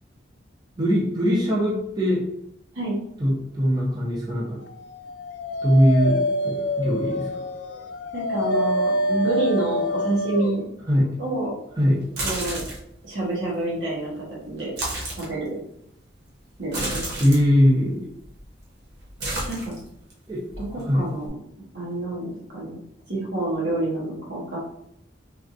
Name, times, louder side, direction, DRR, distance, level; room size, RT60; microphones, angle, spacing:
voice 1, 0.8-2.2 3.2-4.6 5.6-6.2 6.4-7.3 10.9-11.1 11.8-12.0 17.2-18.1 20.3-20.4 20.9-21.0, equal, 20° right, -5 dB, 0.7 m, -20 dB
Dog, 5.0-10.6, left 1 dB, 65° left, 0.3 m, -26 dB
voice 2, 8.1-10.6 11.2-11.5 12.2-12.6 13.0-14.7 15.2-15.5 16.6-17.0 19.5-19.7 20.6-21.4 21.7-22.8 23.1-24.6, right 2 dB, 80° right, -5 dB, 1.3 m, -28 dB
sound 1, 12.0-12.9 14.6-15.3 16.7-17.4 18.2-18.6 18.9-20.1 20.5-21.3, right 2 dB, 60° right, 0.9 m, -31 dB
3.4 x 2.8 x 2.5 m, 0.76 s
head